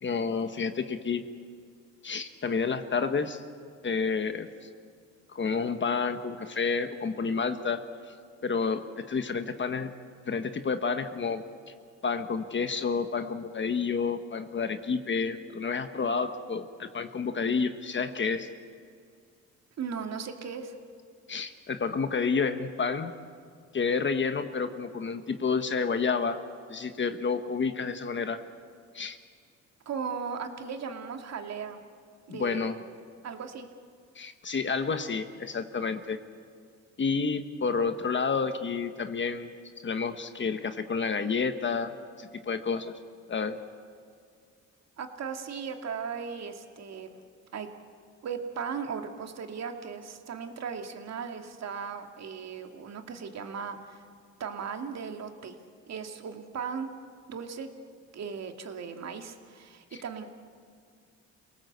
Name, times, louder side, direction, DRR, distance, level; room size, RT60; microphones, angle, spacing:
voice 1, 0.0-1.2 2.0-3.4 3.8-4.7 5.3-8.1 8.4-9.9 10.3-11.7 12.0-18.5 21.3-23.1 23.7-26.4 26.7-28.4 28.9-29.2 32.3-32.8 34.1-36.2 37.0-39.5 39.8-42.9 43.3-43.6, left 5 dB, 40° left, 9 dB, 1.3 m, -30 dB
voice 2, 19.8-20.7 29.9-31.8 32.3-32.8 33.2-33.7 45.0-47.1 47.5-47.7 48.2-54.0 54.4-55.6 55.9-56.9 57.3-57.7 58.1-60.2, right 6 dB, 60° right, 5 dB, 2.3 m, -37 dB
27.5 x 18.0 x 8.1 m, 2.2 s
cardioid pair, 90°, 30 cm